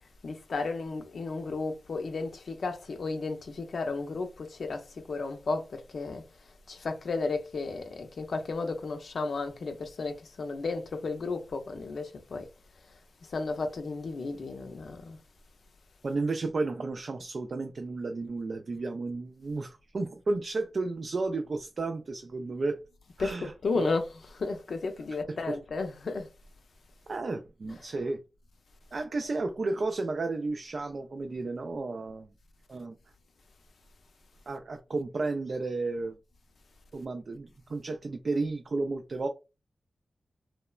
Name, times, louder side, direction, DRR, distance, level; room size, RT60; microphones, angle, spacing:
voice 1, 0.2-6.2 6.7-12.5 13.2-15.2 23.2-24.0 24.4-26.3, left 3 dB, 75° left, 0.5 m, -33 dB
voice 2, 16.0-22.8 23.2-23.9 25.3-25.6 27.1-28.2 28.9-32.3 32.7-33.0 34.5-36.2 36.9-39.3, right 3 dB, 60° right, 0.3 m, -32 dB
3.0 x 2.0 x 2.3 m
cardioid pair, 65°, 0 cm